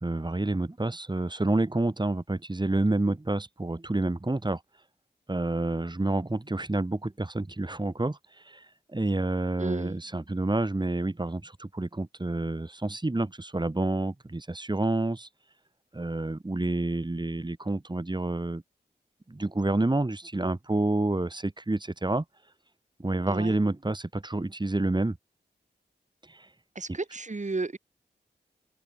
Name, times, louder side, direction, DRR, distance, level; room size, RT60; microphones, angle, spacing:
voice 1, 0.0-4.6 5.3-8.2 8.5-8.6 8.9-15.3 15.9-18.6 19.3-22.2 23.0-25.2 26.3-26.5, right 2 dB, 25° right, 3.9 m, -28 dB
voice 2, 9.6-10.0 23.3-23.6 26.7-27.8, right 3 dB, 45° right, 4.2 m, -33 dB
wide cardioid pair, 80°, 18 cm